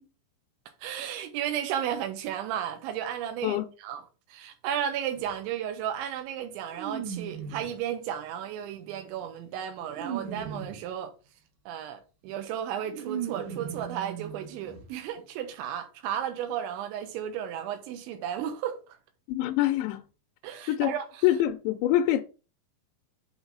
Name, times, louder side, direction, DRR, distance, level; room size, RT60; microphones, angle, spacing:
voice 1, 0.8-11.1 11.7-18.8 20.4-21.1, right 9 dB, 80° right, 3.4 m, -34 dB
sound 1, 5.1-5.3 6.7-7.8 8.6-10.9 12.2-12.3 12.6-14.9 15.1-15.2 15.5-15.6, right 8 dB, 60° right, 2.2 m, -38 dB
voice 2, 19.3-20.0 20.7-20.9 21.2-22.2, left 13 dB, 80° left, 2.8 m, -25 dB
7.9 x 3.9 x 5.4 m
omnidirectional pair, 5.3 m